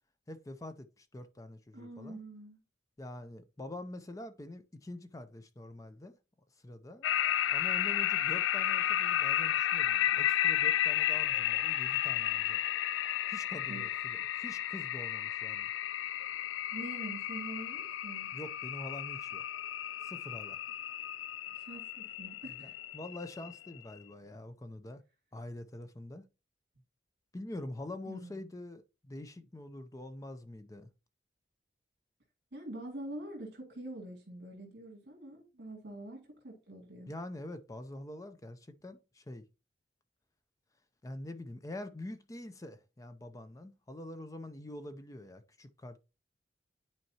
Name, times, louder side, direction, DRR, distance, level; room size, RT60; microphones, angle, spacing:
voice 1, 0.3-2.2 3.0-6.2 6.6-7.1 7.5-12.6 13.3-15.7 18.3-19.4 20.0-20.6 22.5-25.0 25.3-26.2 27.3-30.9 37.1-39.4 41.0-46.0, left 1 dB, 20° left, 0.5 m, -45 dB
voice 2, 1.7-2.6 13.7-13.9 16.7-18.3 21.5-22.8 28.1-28.4 32.5-37.1, right 1 dB, 60° right, 2.2 m, -45 dB
sound 1, 7.0-23.8, left 11 dB, 90° left, 0.3 m, -32 dB
10.5 x 4.4 x 2.8 m
head